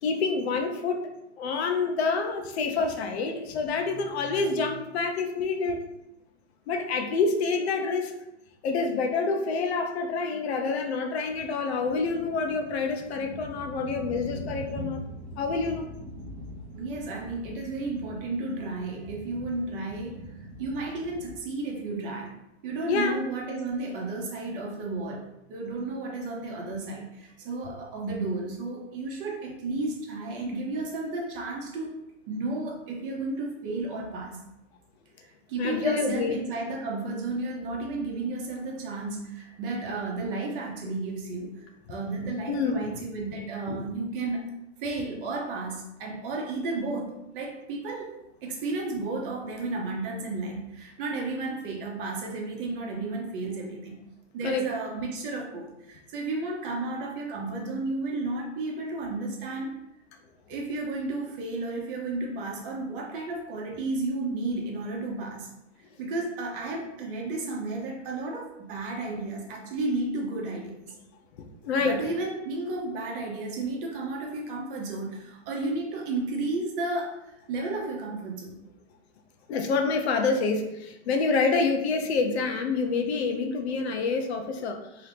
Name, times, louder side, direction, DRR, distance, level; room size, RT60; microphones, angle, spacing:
voice 1, 0.0-1.1 1.4-5.8 6.7-8.1 8.6-15.0 15.4-15.9 22.9-23.2 35.6-36.4 42.5-42.8 43.7-43.8 54.4-54.6 71.6-72.0 79.5-85.1, left 4 dB, 60° left, 5 dB, 0.6 m, -27 dB
sound 1, 11.7-21.4, right 1 dB, 20° right, 0.6 m, -42 dB
voice 2, 16.8-22.3 22.6-25.2 25.5-31.9 32.3-34.4 35.2-44.5 44.8-54.0 54.3-59.8 60.5-65.5 66.0-70.9 71.8-78.5, right 2 dB, 50° right, 0 dB, 0.9 m, -33 dB
2.9 x 2.6 x 3.4 m, 0.87 s
hypercardioid pair, 140°, 36 cm